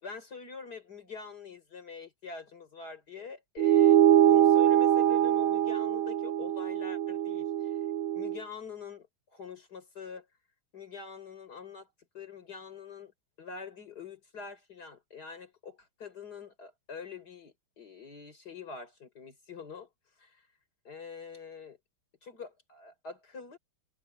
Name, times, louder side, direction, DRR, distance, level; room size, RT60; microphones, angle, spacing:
voice 1, 0.0-7.8 8.1-10.3 10.7-11.9 12.1-13.1 13.4-19.9 20.2-20.5 20.8-21.8 22.2-23.6, left 5 dB, 50° left, 4.8 m, -45 dB
sound 1, 3.6-8.4, right 11 dB, 85° right, 1.6 m, -23 dB
omnidirectional pair, 2.2 m